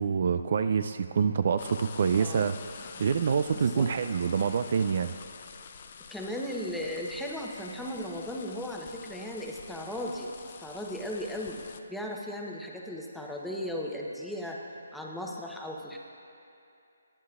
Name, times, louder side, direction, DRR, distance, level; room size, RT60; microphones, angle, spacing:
voice 1, 0.0-5.1, right 6 dB, 50° right, 10 dB, 0.3 m, -27 dB
sound 1, 1.6-11.8, left 6 dB, 45° left, 0.5 m, -47 dB
voice 2, 2.2-2.5 3.5-3.9 6.1-10.3 10.6-11.6 11.9-14.6 14.9-16.0, left 1 dB, ahead, -2 dB, 0.8 m, -36 dB
18.5 x 9.5 x 2.4 m, 2.7 s
hypercardioid pair, 155°, 0 cm